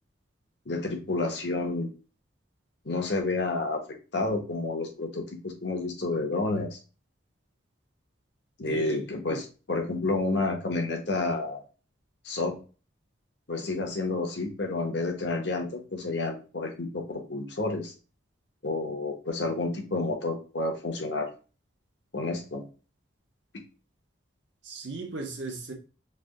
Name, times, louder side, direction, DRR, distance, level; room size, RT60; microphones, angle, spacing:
voice 1, 0.7-1.9 2.8-3.8 4.1-6.8 8.6-11.6 12.2-12.6 13.5-17.9 18.6-21.3 22.1-22.6, left 2 dB, 65° left, 1.0 m, -30 dB
voice 2, 8.7-9.0 9.3-9.4 24.6-25.7, right 3 dB, 70° right, 0.8 m, -36 dB
3.4 x 2.6 x 3.6 m
head